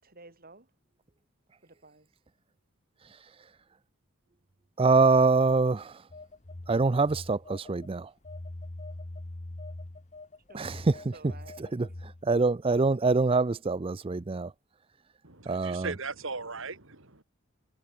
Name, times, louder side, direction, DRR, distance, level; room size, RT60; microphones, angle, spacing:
voice 1, 0.0-0.7 1.6-2.1 10.5-11.6 11.9-12.0, right 3 dB, 40° right, 5.2 m, -53 dB
voice 2, 4.8-6.0 6.7-8.1 10.5-10.9 11.7-14.5 15.5-15.9, right 3 dB, 25° right, 0.4 m, -25 dB
Telephone, 6.1-7.9 8.2-12.3, left 2 dB, 30° left, 1.0 m, -43 dB
voice 3, 15.2-17.2, right 4 dB, 60° right, 3.1 m, -38 dB
head